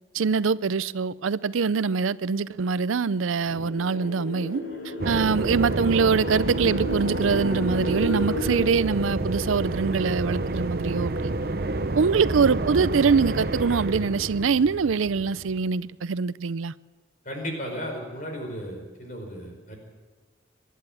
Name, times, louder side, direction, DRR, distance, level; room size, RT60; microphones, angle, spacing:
voice 1, 0.1-4.6 5.0-11.3 12.0-16.7, right 5 dB, 85° right, 0.5 m, -24 dB
sound 1, 3.5-8.6, equal, 70° left, 4.8 m, -33 dB
sound 2, 5.0-15.7, right 2 dB, 50° right, 0.8 m, -29 dB
voice 2, 17.2-19.8, equal, 40° left, 5.0 m, -35 dB
24.0 x 11.0 x 9.9 m
head